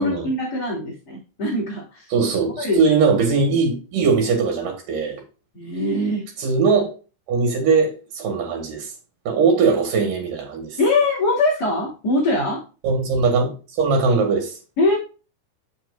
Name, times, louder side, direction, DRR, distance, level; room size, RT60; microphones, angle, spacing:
voice 1, 0.0-2.1 2.6-2.8 5.5-6.3 10.8-12.6 14.8-15.0, left 2 dB, 30° left, 3.4 m, -22 dB
voice 2, 2.1-5.2 6.4-6.9 7.3-8.9 9.3-10.8 12.8-14.6, right 4 dB, 80° right, 3.6 m, -20 dB
9.1 x 7.5 x 2.5 m
omnidirectional pair, 3.7 m